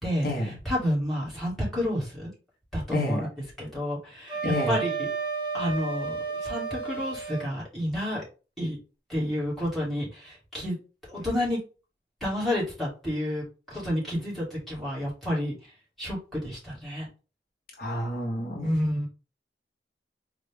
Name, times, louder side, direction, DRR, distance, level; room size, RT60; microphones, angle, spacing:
voice 1, 0.0-2.3 2.7-3.3 3.6-5.1 5.5-6.2 6.4-8.2 8.6-8.8 9.1-10.8 11.1-11.6 12.2-13.4 13.7-15.5 16.0-17.1 18.6-19.1, equal, ahead, -7 dB, 2.1 m, -30 dB
Wind instrument woodwind instrument, 4.3-7.5, right 5 dB, 25° right, 0.8 m, -32 dB
voice 2, 4.4-4.8 17.8-18.7, left 1 dB, 55° left, 0 dB, 1.0 m, -28 dB
4.1 x 2.5 x 3.5 m, 0.33 s
head